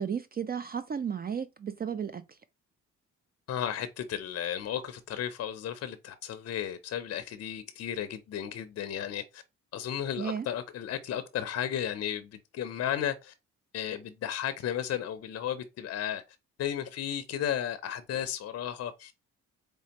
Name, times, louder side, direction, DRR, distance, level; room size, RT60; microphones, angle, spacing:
voice 1, 0.0-2.4 10.2-10.5, right 7 dB, 30° right, 0.4 m, -34 dB
voice 2, 3.5-9.4 9.7-13.3 13.7-16.2 16.6-19.1, left 10 dB, 55° left, 0.5 m, -34 dB
4.2 x 3.3 x 2.8 m
cardioid pair, 90°, 30 cm